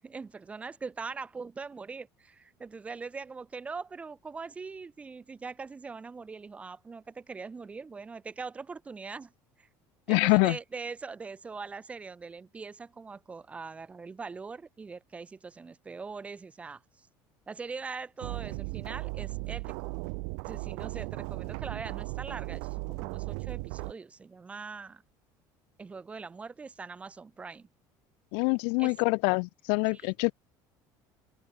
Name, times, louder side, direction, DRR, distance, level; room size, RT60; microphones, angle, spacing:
voice 1, 0.0-9.3 9.6-9.7 10.1-17.1 17.5-20.0 20.5-25.0 25.8-27.7 28.8-28.9 29.9-30.1, right 4 dB, 15° right, 7.1 m, -42 dB
voice 2, 10.1-10.6 28.3-30.3, left 40 dB or more, 80° left, 2.6 m, -25 dB
sound 1, 18.2-23.9, right 40 dB or more, 85° right, 4.7 m, -36 dB
open air
cardioid pair, 170°, 8 cm